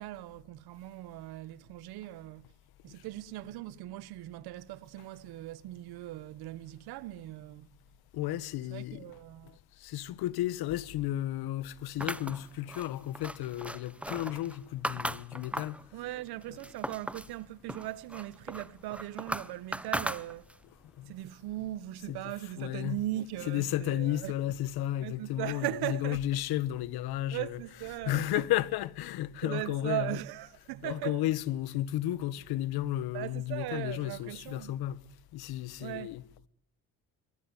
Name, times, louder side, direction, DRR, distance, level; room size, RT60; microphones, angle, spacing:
voice 1, 0.0-2.4 2.8-7.7 8.7-9.6 15.9-20.5 21.1-24.3 25.0-26.2 27.3-28.4 29.4-31.2 33.1-34.8 35.8-36.2, right 16 dB, 80° right, 1.4 m, -39 dB
voice 2, 8.1-9.0 9.8-15.8 21.0-21.1 22.1-23.0 23.5-27.6 28.0-30.2 30.8-35.0 35.3-36.2, left 14 dB, 75° left, 1.6 m, -33 dB
sound 1, 12.0-15.8 16.3-17.3 17.7-20.7, right 1 dB, 5° right, 1.2 m, -38 dB
24.0 x 19.5 x 9.9 m
supercardioid pair, 85°, 37 cm